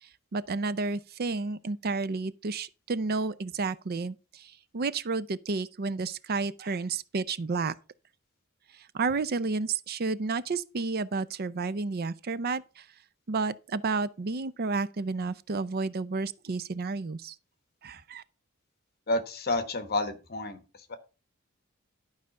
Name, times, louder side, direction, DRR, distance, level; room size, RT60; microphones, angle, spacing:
voice 1, 0.0-7.7 8.7-12.9 13.3-17.4 17.8-18.2, right 4 dB, 45° right, 0.5 m, -31 dB
voice 2, 19.1-20.6 20.9-21.0, left 2 dB, 50° left, 1.4 m, -30 dB
11.5 x 4.9 x 5.4 m
head